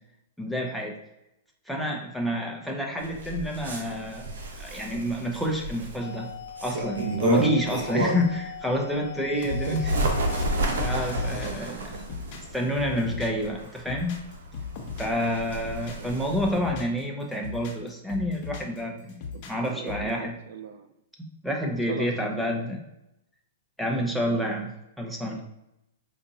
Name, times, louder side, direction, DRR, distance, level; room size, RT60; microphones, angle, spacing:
voice 1, 0.4-1.0 1.7-4.3 4.6-6.3 6.6-9.8 10.8-11.9 12.4-14.2 15.0-19.2 19.5-20.3 21.4-22.8 23.8-25.4, equal, ahead, -1 dB, 0.7 m, -28 dB
Bird, 3.0-8.4 8.9-16.5, right 2 dB, 75° right, 0.8 m, -32 dB
sound 1, 6.0-11.3, left 8 dB, 70° left, 0.3 m, -41 dB
voice 2, 9.2-9.9 11.3-12.3 16.0-16.2 19.3-20.9 21.9-22.6 25.3-25.4, right 7 dB, 60° right, 8 dB, 0.3 m, -40 dB
sound 2, 9.4-13.5 13.8-15.2 15.5-17.0 17.3-18.8 19.1-20.1, left 3 dB, 40° left, 0.8 m, -35 dB
5.1 x 2.5 x 2.7 m, 0.87 s
hypercardioid pair, 140°, 0 cm